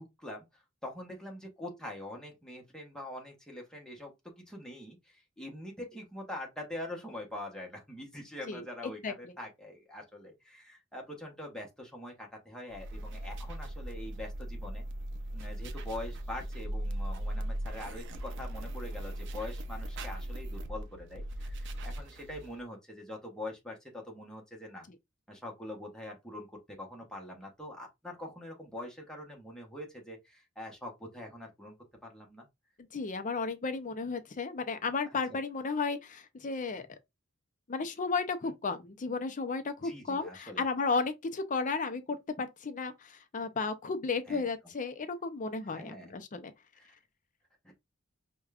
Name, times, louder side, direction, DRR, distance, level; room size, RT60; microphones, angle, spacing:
voice 1, 0.0-14.8 15.3-24.8 25.3-31.7 32.0-32.5 38.4-38.5 39.8-40.6 44.3-44.4 45.7-46.1 46.8-46.9 47.6-47.8, left 1 dB, 5° left, 0.8 m, -44 dB
voice 2, 8.5-9.1 32.9-36.9 37.7-46.5, left 4 dB, 40° left, 0.5 m, -34 dB
sound 1, 12.7-22.6, right 1 dB, 60° right, 0.5 m, -38 dB
4.9 x 2.2 x 2.3 m
head